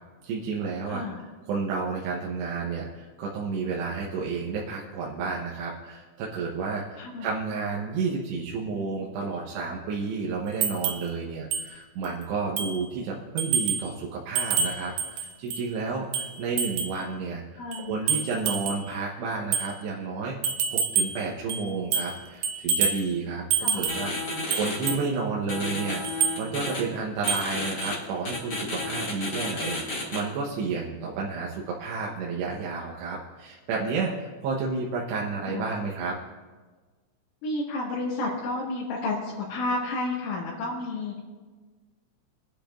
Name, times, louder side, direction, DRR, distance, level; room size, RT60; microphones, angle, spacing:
voice 1, 0.3-1.0 1.5-36.2, right 4 dB, 75° right, -4 dB, 2.8 m, -31 dB
voice 2, 0.9-1.2 7.0-7.3 17.6-18.2 23.6-23.8 35.5-35.7 37.4-41.2, left 2 dB, 80° left, -7 dB, 4.3 m, -31 dB
sound 1, 10.6-11.1 11.5-11.7 12.0-12.1 12.6-12.8 13.4-13.9 14.4-15.7 16.1-17.0 17.7-18.9 19.5-19.7 20.4-21.2 21.5-22.2 22.4-23.1 23.5-24.1 24.5-25.1 26.0-26.4 27.3-27.5 27.8-27.9, right 6 dB, 90° right, 2.1 m, -27 dB
sound 2, 23.9-25.0 25.5-26.8 27.2-27.9 28.2-30.2, left 2 dB, 35° left, 1.7 m, -32 dB
23.0 x 10.5 x 2.5 m, 1.4 s
omnidirectional pair, 5.6 m